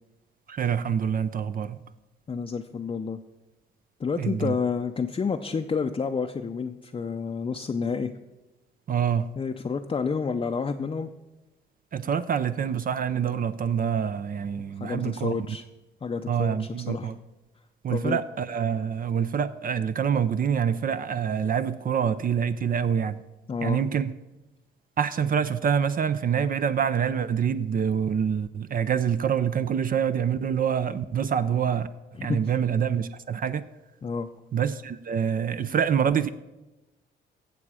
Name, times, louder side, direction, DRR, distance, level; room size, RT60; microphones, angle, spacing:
voice 1, 0.5-1.8 4.2-4.5 8.9-9.3 11.9-15.4 16.3-17.1 17.8-23.2 23.6-24.1 25.0-31.9 32.2-33.6 34.5-36.3, right 7 dB, 45° right, 12 dB, 0.5 m, -26 dB
voice 2, 2.3-3.2 4.0-8.1 9.4-11.1 14.8-15.6 16.0-17.1 17.9-18.2 23.5-23.8 32.1-32.4 34.0-34.3, left 5 dB, 25° left, 5 dB, 0.6 m, -29 dB
16.0 x 6.9 x 4.9 m, 1.1 s
cardioid pair, 90°, 20 cm